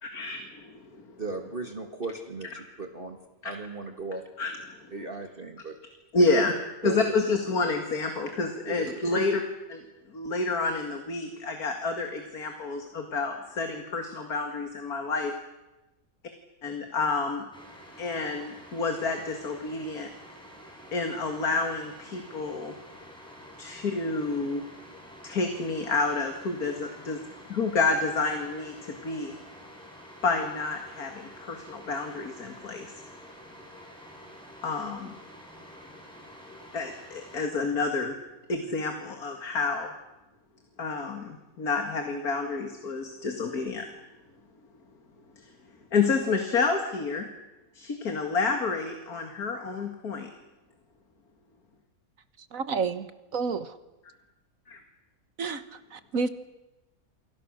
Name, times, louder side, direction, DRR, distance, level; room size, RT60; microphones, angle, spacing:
voice 1, 0.0-1.0 3.4-3.5 4.4-4.5 6.1-6.5 6.8-9.4 9.7-9.8 10.1-15.3 16.6-17.4 18.0-20.1 20.9-22.7 23.6-24.6 25.2-27.2 27.5-29.4 30.2-32.9 34.6-35.1 36.7-38.1 38.5-39.9 40.8-43.9 45.9-47.3 47.7-50.3 54.7-54.8, left 3 dB, 75° left, 5 dB, 2.6 m, -29 dB
voice 2, 1.2-3.2 3.4-4.2 4.9-5.8 6.3-6.5 6.8-7.2 8.6-9.3, right 3 dB, 35° right, 5 dB, 2.0 m, -36 dB
sound 1, 17.5-37.5, equal, 5° left, 5.8 m, -48 dB
voice 3, 52.5-53.1 53.3-53.8 55.4-56.3, right 5 dB, 65° right, 12 dB, 1.7 m, -30 dB
28.5 x 24.0 x 6.5 m, 1.1 s
omnidirectional pair, 1.6 m